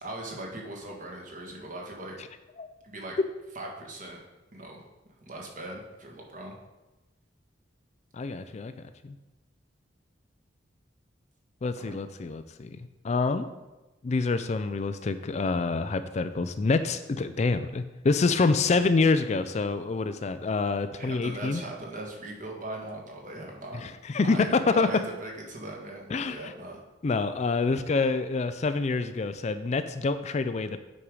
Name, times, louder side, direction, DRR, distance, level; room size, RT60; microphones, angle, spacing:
voice 1, 0.0-2.1 2.8-3.2 3.5-4.2 4.5-4.8 5.2-6.5 11.8-11.9 20.9-23.8 24.2-26.8, right 1 dB, 45° right, 0 dB, 1.6 m, -39 dB
voice 2, 8.1-8.7 9.0-9.1 11.6-13.5 14.0-21.6 23.8-24.9 26.1-26.5 27.0-30.8, left 3 dB, 35° left, 10 dB, 0.4 m, -27 dB
8.6 x 5.4 x 4.8 m, 1.1 s
head